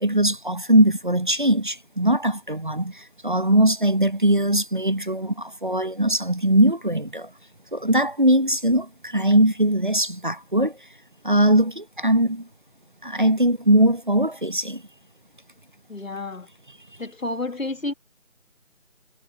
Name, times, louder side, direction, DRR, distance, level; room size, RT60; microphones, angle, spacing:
voice 1, 0.0-7.3 7.7-10.8 11.2-12.5 13.0-14.8, right 1 dB, 40° right, 1.0 m, -20 dB
voice 2, 15.9-16.5 17.0-17.9, left 2 dB, 85° left, 2.3 m, -30 dB
figure-of-eight pair, 170°, 40 cm